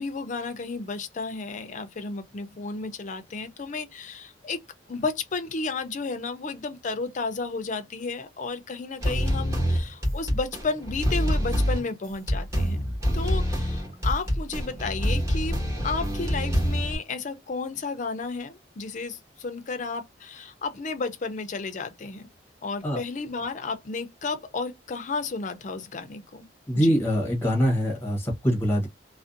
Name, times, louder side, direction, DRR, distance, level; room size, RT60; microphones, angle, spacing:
voice 1, 0.0-4.6 4.9-12.8 13.1-22.3 22.6-26.5 26.7-26.9, left 4 dB, 45° left, 0.5 m, -32 dB
sound 1, 9.0-17.0, equal, 15° right, 1.1 m, -26 dB
voice 2, 26.7-28.9, equal, 15° left, 0.9 m, -23 dB
2.5 x 2.1 x 2.5 m
head